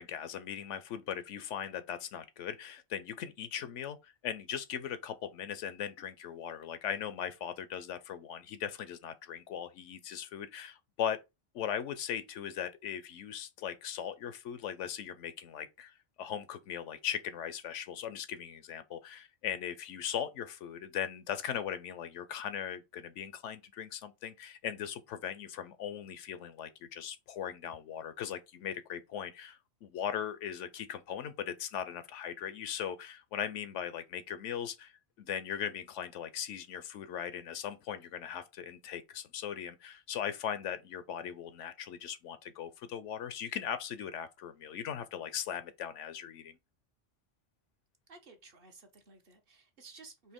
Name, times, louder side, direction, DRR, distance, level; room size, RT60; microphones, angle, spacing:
voice 1, 0.0-11.2 11.5-34.9 35.2-46.6, left 9 dB, 80° left, 0.9 m, -39 dB
voice 2, 48.1-50.3, right 4 dB, 50° right, 1.0 m, -55 dB
4.3 x 2.7 x 3.5 m
omnidirectional pair, 1.2 m